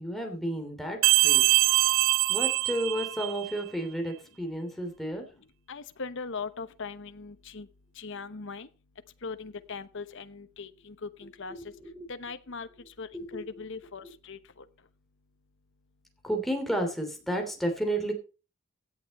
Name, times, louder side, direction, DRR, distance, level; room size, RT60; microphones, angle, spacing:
voice 1, 0.0-1.4 2.3-5.2 11.5-12.1 13.1-13.3 16.2-18.1, right 1 dB, ahead, 3 dB, 3.0 m, -32 dB
sound 1, 1.0-3.6, right 20 dB, 65° right, 0.5 m, -23 dB
voice 2, 5.7-7.7 8.0-8.7 9.2-11.5 12.1-12.7 13.0-14.4, left 4 dB, 60° left, 11 dB, 1.0 m, -39 dB
16.5 x 8.7 x 4.3 m, 0.33 s
head